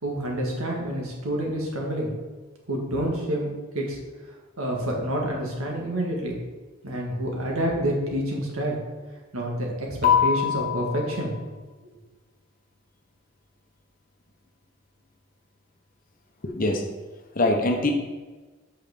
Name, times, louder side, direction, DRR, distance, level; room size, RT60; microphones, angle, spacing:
voice 1, 0.0-2.1 2.7-3.5 3.7-4.0 4.6-6.3 6.8-8.8 9.3-9.9 10.2-11.3, right 1 dB, 85° right, -1 dB, 2.0 m, -28 dB
voice 2, 10.0-11.2 16.4-16.8 17.3-17.9, left 5 dB, 40° left, 4 dB, 1.0 m, -23 dB
5.7 x 5.5 x 6.6 m, 1.3 s
head